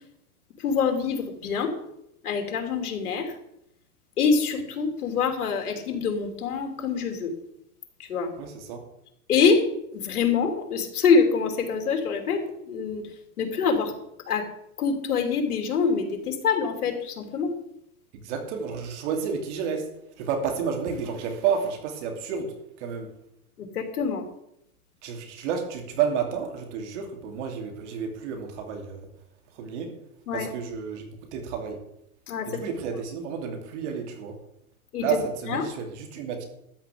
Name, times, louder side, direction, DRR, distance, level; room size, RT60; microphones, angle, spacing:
voice 1, 0.6-1.7 2.2-3.4 4.2-7.3 8.0-8.3 9.3-9.6 9.9-13.1 13.4-13.9 14.3-14.5 14.8-17.6 23.6-24.3 30.3-30.5 32.3-32.6 34.9-35.2 35.5-35.7, left 5 dB, 85° left, 5 dB, 3.0 m, -25 dB
voice 2, 8.4-8.9 18.2-23.1 25.0-29.1 29.5-30.0 30.3-31.8 32.4-34.4 35.0-36.4, right 7 dB, 50° right, 4 dB, 2.9 m, -31 dB
13.0 x 5.8 x 8.6 m, 0.79 s
supercardioid pair, 150°, 43 cm